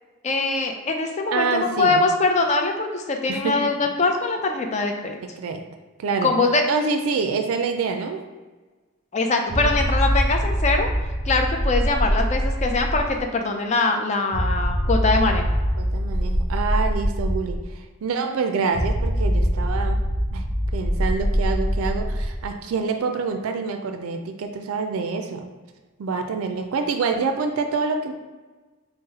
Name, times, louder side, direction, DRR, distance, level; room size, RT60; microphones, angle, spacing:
voice 1, 0.2-5.2 6.2-6.6 9.1-10.9 11.3-15.5, left 3 dB, 35° left, 4 dB, 0.4 m, -22 dB
voice 2, 1.3-2.0 3.3-3.7 5.2-5.7 6.0-6.3 6.7-8.3 15.8-20.0 20.3-20.4 20.7-25.5 26.0-28.1, right 4 dB, 90° right, 6 dB, 0.4 m, -26 dB
sound 1, 9.5-13.2 14.3-17.6 18.7-22.4, equal, 15° right, 1.4 m, -23 dB
3.9 x 2.0 x 4.0 m, 1.3 s
head